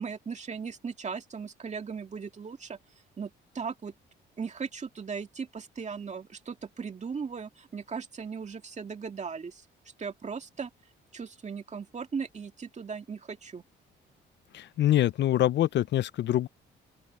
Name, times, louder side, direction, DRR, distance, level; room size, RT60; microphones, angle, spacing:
voice 1, 0.0-2.8 3.2-3.9 4.4-9.6 10.0-10.7 11.1-13.6, right 5 dB, 35° right, 2.3 m, -37 dB
voice 2, 14.5-16.5, left 13 dB, 60° left, 0.5 m, -25 dB
open air
cardioid pair, 90°, 20 cm